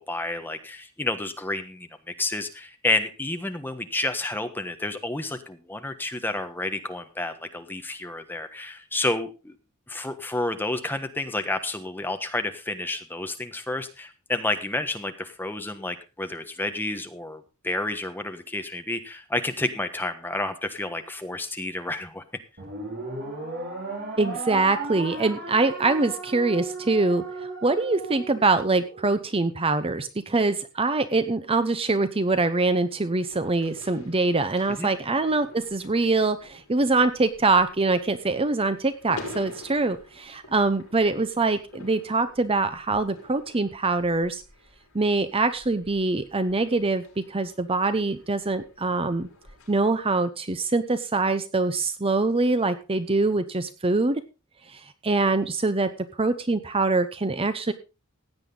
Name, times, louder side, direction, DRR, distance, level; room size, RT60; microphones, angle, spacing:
voice 1, 0.1-9.6 9.9-22.2 34.8-34.9, left 2 dB, 10° left, 7 dB, 1.3 m, -30 dB
sound 1, 22.6-29.1, right 2 dB, 50° right, 4.0 m, -36 dB
voice 2, 24.2-27.2 27.6-44.4 44.9-49.3 49.7-54.2 54.7-55.9 56.2-57.7, right 3 dB, 25° right, 11 dB, 0.8 m, -24 dB
sound 2, 33.3-50.2, left 2 dB, 70° left, 5.0 m, -48 dB
16.0 x 9.1 x 3.8 m, 0.30 s
head